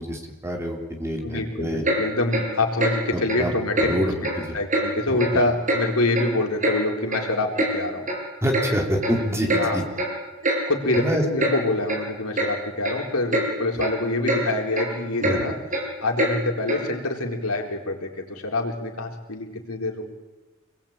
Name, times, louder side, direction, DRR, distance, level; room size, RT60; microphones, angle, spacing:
voice 1, 0.0-1.8 3.1-3.5 3.8-4.6 5.1-5.4 8.4-9.8 10.9-11.2 15.2-15.4, equal, 10° right, 1 dB, 3.8 m, -26 dB
voice 2, 1.2-3.9 4.3-8.1 9.6-9.8 10.7-15.5 16.0-20.1, left 2 dB, 80° left, 1 dB, 4.1 m, -26 dB
Clock, 1.8-2.0 2.3-2.5 2.8-3.0 3.3-3.4 3.7-3.9 4.2-4.4 4.7-4.8 5.2-5.3 5.7-5.8 6.1-6.8 7.1-7.2 7.6-7.7 8.1-8.2 8.5-8.7 9.0-9.2 9.5-9.6 10.0-10.1 10.4-10.6 10.9-11.0 11.4-11.5 11.9-12.0 12.4-12.5 12.8-13.0 13.3-13.5 13.8-13.9 14.3-14.4 14.7-14.9 15.2-15.4 15.7-15.8 16.2-16.3 16.7-16.8, right 1 dB, 35° right, 6.7 m, -24 dB
27.0 x 20.5 x 9.0 m, 1.2 s
head